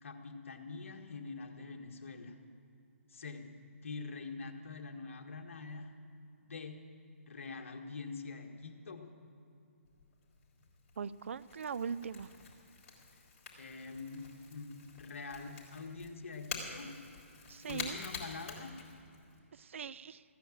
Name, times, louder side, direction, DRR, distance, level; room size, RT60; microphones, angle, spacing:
voice 1, 0.0-2.4 3.1-3.5 3.7-5.9 6.4-6.8 7.3-9.1 13.6-16.9 17.6-18.8, left 4 dB, 60° left, 3 dB, 1.7 m, -45 dB
Crackle / Crack, 9.8-19.4, left 4 dB, 35° left, 3.8 m, -48 dB
voice 2, 11.0-12.3 17.5-18.0 19.5-20.2, right 6 dB, 60° right, 16 dB, 0.5 m, -40 dB
15.5 x 10.0 x 7.4 m, 2.7 s
figure-of-eight pair, 145°, 8 cm